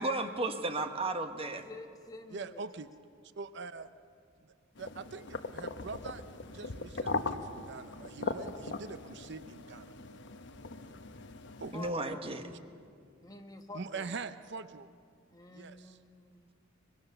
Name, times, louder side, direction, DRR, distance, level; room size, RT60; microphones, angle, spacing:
voice 1, 0.0-1.6 8.3-8.4 11.7-12.4, right 2 dB, 30° right, 6 dB, 1.3 m, -34 dB
voice 2, 1.6-2.6 11.7-12.2 13.2-14.1 15.3-16.5, left 2 dB, 20° left, 5 dB, 1.3 m, -49 dB
voice 3, 2.3-2.9 3.4-3.9 4.4-6.2 6.5-9.9 11.6-11.7 13.7-14.9 15.5-16.0, right 4 dB, 60° right, 12 dB, 0.7 m, -43 dB
sound 1, 4.8-11.9, left 3 dB, 65° left, 1.0 m, -40 dB
24.0 x 21.5 x 6.7 m, 2.3 s
head